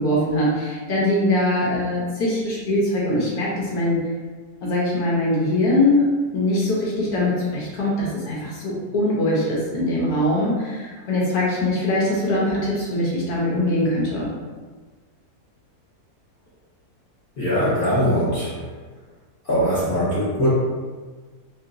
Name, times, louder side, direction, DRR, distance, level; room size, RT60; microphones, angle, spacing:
voice 1, 0.0-4.0 4.6-6.1 6.3-14.3, left 1 dB, 70° left, -5 dB, 1.2 m, -22 dB
voice 2, 17.4-18.6 19.4-20.5, equal, 40° left, -10 dB, 0.9 m, -21 dB
3.1 x 2.7 x 2.5 m, 1.4 s
omnidirectional pair, 1.8 m